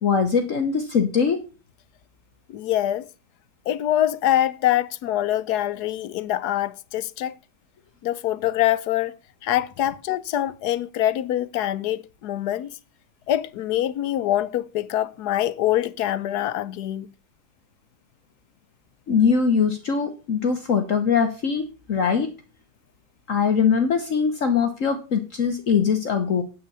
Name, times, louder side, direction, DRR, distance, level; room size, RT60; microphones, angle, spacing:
voice 1, 0.0-1.4 19.1-21.6 21.9-22.3 23.3-26.4, left 6 dB, 55° left, 1.4 m, -21 dB
voice 2, 2.5-3.1 3.7-7.3 8.0-9.1 9.4-12.7 13.3-17.1, left 12 dB, 90° left, 1.3 m, -24 dB
9.4 x 8.3 x 5.5 m
omnidirectional pair, 1.7 m